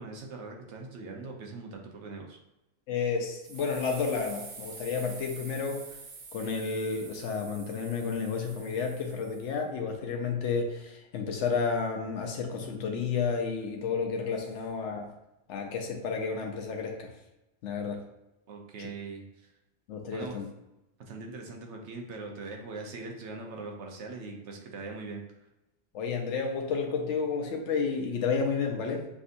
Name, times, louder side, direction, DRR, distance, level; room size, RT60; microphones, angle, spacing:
voice 1, 0.0-2.4 18.5-19.5 20.1-20.4 21.1-25.2, right 3 dB, 75° right, 2 dB, 1.0 m, -41 dB
voice 2, 2.9-5.9 6.3-15.1 15.5-17.1 17.6-18.0 18.8-18.9 19.9-20.5 25.9-29.1, left 5 dB, 85° left, 2 dB, 0.9 m, -31 dB
sound 1, 3.4-9.6, right 4 dB, 60° right, 0.8 m, -47 dB
5.9 x 2.7 x 2.5 m, 0.93 s
omnidirectional pair, 1.2 m